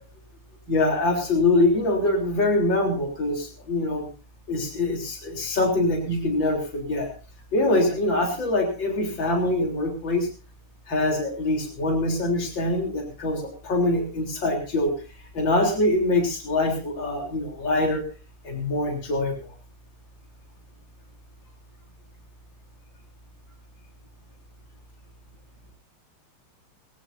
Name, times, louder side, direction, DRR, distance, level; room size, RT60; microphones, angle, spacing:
voice 1, 0.7-4.0 4.5-7.1 7.5-10.3 10.9-14.9 15.3-18.0 18.4-19.5, left 2 dB, 60° left, 2 dB, 4.3 m, -24 dB
21.0 x 17.0 x 2.7 m, 0.35 s
omnidirectional pair, 2.3 m